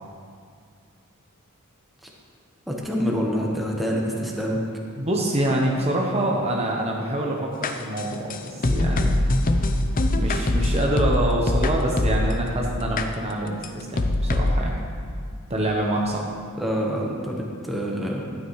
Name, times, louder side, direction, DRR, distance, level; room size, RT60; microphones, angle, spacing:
voice 1, 2.7-4.6 16.6-18.2, equal, ahead, -2 dB, 1.1 m, -26 dB
voice 2, 5.0-9.2 10.2-14.8 15.5-16.3, right 1 dB, 30° right, -1 dB, 0.9 m, -26 dB
sound 1, 7.6-12.5 13.0-13.1 13.6-13.7 14.0-14.6, left 1 dB, 40° left, 0.5 m, -22 dB
12.5 x 9.0 x 3.1 m, 2.3 s
head